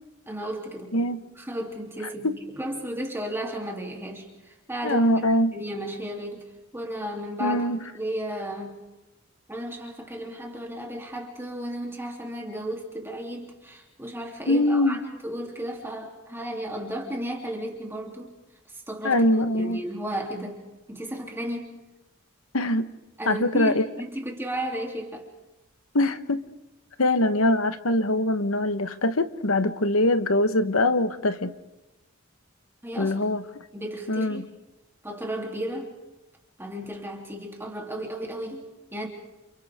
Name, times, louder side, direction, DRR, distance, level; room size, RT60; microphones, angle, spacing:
voice 1, 0.3-1.1 1.4-5.0 5.5-6.5 6.7-8.8 9.5-18.3 18.7-20.6 20.9-21.8 23.2-25.3 32.8-33.2 33.7-34.5 35.0-35.9 36.6-39.1, equal, 10° right, -1 dB, 3.2 m, -34 dB
voice 2, 4.8-5.5 7.4-7.8 14.5-15.0 19.0-19.8 22.5-22.9 23.3-23.8 25.9-26.4 27.0-31.5 33.0-33.4 34.1-34.5, left 1 dB, 90° left, 10 dB, 1.3 m, -23 dB
30.0 x 29.5 x 3.7 m, 1.0 s
head